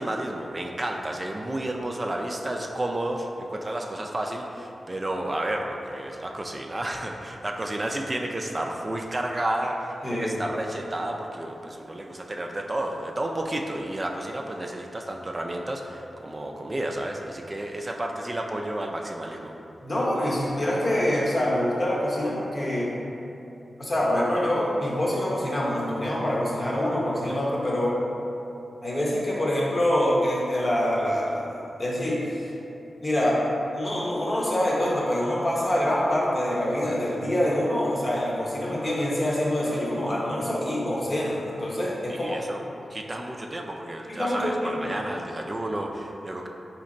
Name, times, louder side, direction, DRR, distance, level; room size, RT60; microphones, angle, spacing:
voice 1, 0.0-19.5 42.1-42.6 42.9-46.5, right 1 dB, 35° right, 1 dB, 0.3 m, -31 dB
voice 2, 10.0-10.4 19.8-22.9 23.8-28.0 28.8-31.5 31.8-32.5 33.0-33.4 33.7-42.4 44.1-44.9, left 1 dB, 50° left, -5 dB, 0.8 m, -25 dB
4.0 x 2.9 x 2.6 m, 2.8 s
cardioid pair, 45°, 0 cm